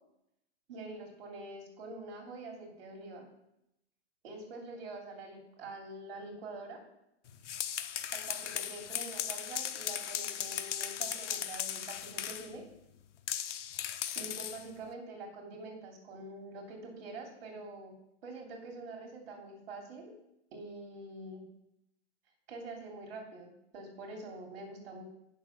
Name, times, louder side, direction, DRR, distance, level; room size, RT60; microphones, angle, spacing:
voice 1, 0.7-3.3 4.2-6.8 8.1-12.6 14.1-17.9 18.2-20.1 20.5-21.4 22.5-25.0, right 2 dB, 55° right, 1 dB, 3.3 m, -45 dB
sound 1, 7.3-12.5 13.3-14.7, left 10 dB, 85° left, 0.9 m, -37 dB
8.6 x 6.6 x 6.0 m, 0.83 s
supercardioid pair, 165°, 35 cm